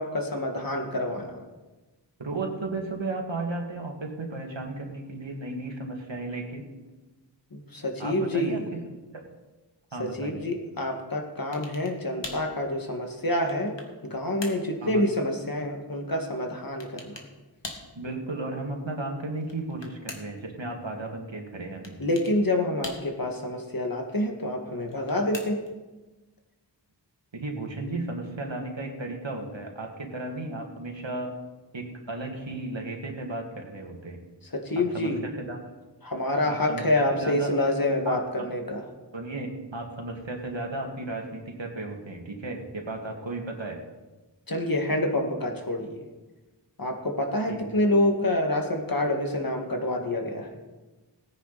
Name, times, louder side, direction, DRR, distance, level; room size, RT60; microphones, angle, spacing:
voice 1, 0.0-1.4 7.5-8.7 10.0-13.8 14.0-17.2 22.0-25.6 34.5-35.2 36.0-38.8 44.5-46.0 46.8-50.6, left 1 dB, 50° left, 3 dB, 2.0 m, -27 dB
voice 2, 2.2-6.6 8.0-9.3 9.9-10.4 14.8-15.0 17.9-22.0 27.3-31.3 31.7-34.2 34.8-35.6 36.4-37.5 38.1-38.5 39.1-43.8 47.5-47.6, right 2 dB, 80° right, 1 dB, 2.2 m, -34 dB
sound 1, 11.5-12.0 12.2-12.5 13.2-14.0 14.4-14.7 16.8-17.3 17.6-17.9 19.3-20.4 21.8-22.4 22.8-23.4 24.8-25.8, left 3 dB, 75° left, 1.8 m, -41 dB
18.0 x 9.6 x 4.2 m, 1.2 s
wide cardioid pair, 55°, 44 cm